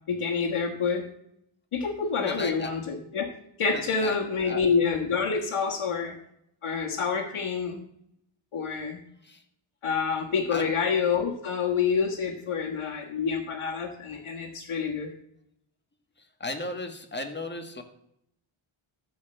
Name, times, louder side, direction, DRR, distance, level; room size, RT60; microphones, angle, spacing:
voice 1, 0.1-1.0 1.7-3.3 3.6-6.2 6.6-7.8 8.5-9.0 9.8-15.1, left 5 dB, 80° left, -2 dB, 1.8 m, -27 dB
voice 2, 2.2-2.7 3.7-4.1 4.4-4.6 9.2-9.4 10.5-10.7 16.2-17.8, left 2 dB, 20° left, 5 dB, 1.7 m, -35 dB
13.5 x 5.0 x 7.7 m, 0.74 s
wide cardioid pair, 115°, 48 cm